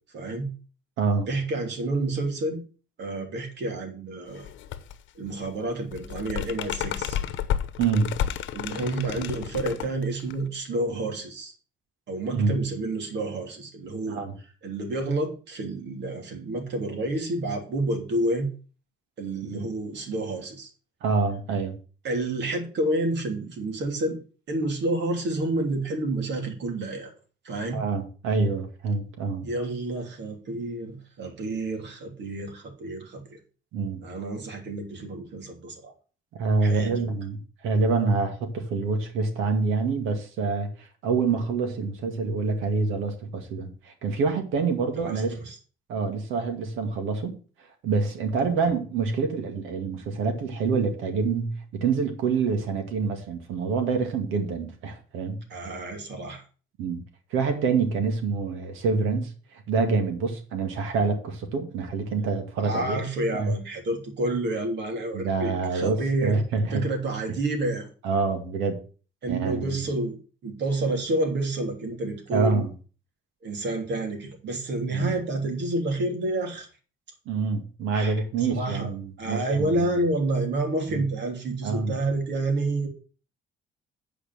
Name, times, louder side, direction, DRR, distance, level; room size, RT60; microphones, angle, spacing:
voice 1, 0.1-0.5 1.3-2.6 3.0-4.5 5.1-7.2 8.5-11.5 12.1-14.2 14.6-18.5 19.2-20.7 22.0-24.2 24.5-27.1 27.4-27.8 29.4-33.4 34.0-35.9 36.6-37.1 44.9-45.6 48.6-48.7 55.5-56.4 62.6-66.4 66.7-67.9 69.2-72.7 73.4-76.7 77.9-78.9 79.2-82.9, right 2 dB, 60° right, 3.2 m, -29 dB
voice 2, 1.0-1.3 7.8-8.1 12.3-12.6 14.1-14.4 19.5-19.7 21.0-21.8 27.7-29.4 33.7-34.0 36.3-37.4 37.6-45.4 45.9-47.4 47.8-55.4 56.8-57.0 57.3-59.3 59.7-63.0 63.3-63.5 65.1-66.8 67.3-67.4 68.0-68.8 69.3-69.8 72.3-72.7 74.9-75.1 77.3-80.0 80.9-81.0 81.6-81.9, right 4 dB, 85° right, 2.2 m, -26 dB
sound 1, 4.3-5.0 5.3-10.5, left 10 dB, 70° left, 0.9 m, -31 dB
8.7 x 5.0 x 7.6 m
cardioid pair, 95°, 20 cm